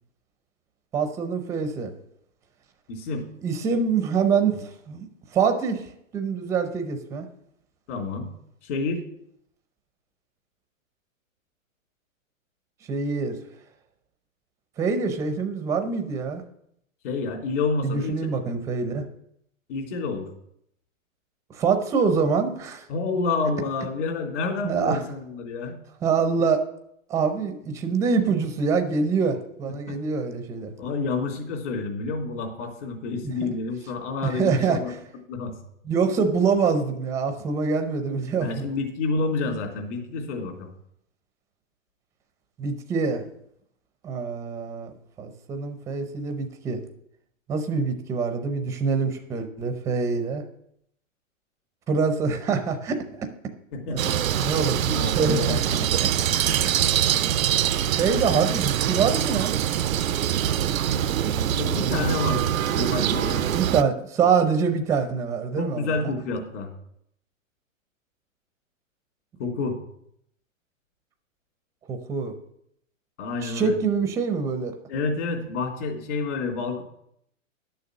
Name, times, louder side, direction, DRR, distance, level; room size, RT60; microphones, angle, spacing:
voice 1, 0.9-1.9 3.4-5.1 5.3-5.8 6.1-7.3 12.9-13.4 14.8-16.4 17.8-19.1 21.5-22.9 24.6-25.0 26.0-26.6 27.1-30.7 33.2-33.5 34.3-34.8 35.9-38.7 42.6-43.2 44.0-44.9 45.2-46.8 47.5-50.4 51.9-53.3 53.9-54.0 54.4-55.6 58.0-59.6 61.7-62.4 63.5-65.9 71.9-72.3 73.4-74.7, right 5 dB, 10° right, 7 dB, 0.5 m, -25 dB
voice 2, 2.9-3.2 7.9-8.3 8.6-9.0 17.0-18.3 19.7-20.3 22.9-25.8 29.9-30.0 30.8-34.9 35.3-35.5 38.4-40.7 53.7-54.2 54.9-55.8 61.3-62.4 62.7-63.5 65.6-66.7 69.4-69.8 73.2-73.8 74.9-76.8, left 3 dB, 60° left, 1 dB, 3.3 m, -29 dB
sound 1, 54.0-63.8, right 10 dB, 85° right, 0.6 m, -24 dB
11.0 x 6.9 x 6.2 m, 0.73 s
hypercardioid pair, 145°, 40 cm